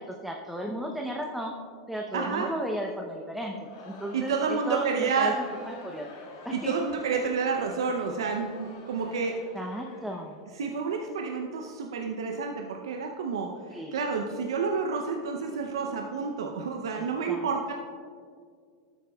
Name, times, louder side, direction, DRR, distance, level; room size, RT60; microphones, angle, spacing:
voice 1, 0.0-1.6 1.9-6.9 9.2-10.4 13.7-14.0 16.9-17.7, equal, 5° right, 1 dB, 0.7 m, -35 dB
voice 2, 2.1-2.5 4.1-5.3 6.5-9.4 10.6-17.7, right 5 dB, 90° right, 2 dB, 0.6 m, -29 dB
Crowd, 3.5-10.8, left 2 dB, 70° left, 1.9 m, -48 dB
13.0 x 8.3 x 2.3 m, 2.1 s
hypercardioid pair, 120°, 2 cm